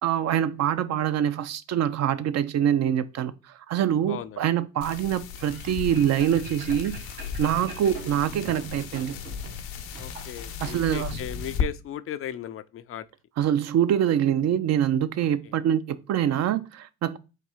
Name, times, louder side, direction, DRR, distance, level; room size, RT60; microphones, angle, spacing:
voice 1, 0.0-3.3 3.7-7.0 7.4-9.1 10.6-11.2 13.4-17.2, right 10 dB, 55° right, 0.5 m, -25 dB
voice 2, 4.1-4.4 9.9-13.1 15.2-15.3, left 10 dB, 45° left, 0.4 m, -37 dB
sound 1, 4.8-11.7, left 7 dB, 80° left, 0.8 m, -35 dB
sound 2, 5.4-11.1, right 2 dB, 90° right, 2.3 m, -44 dB
4.1 x 2.7 x 4.8 m
hypercardioid pair, 65°, 32 cm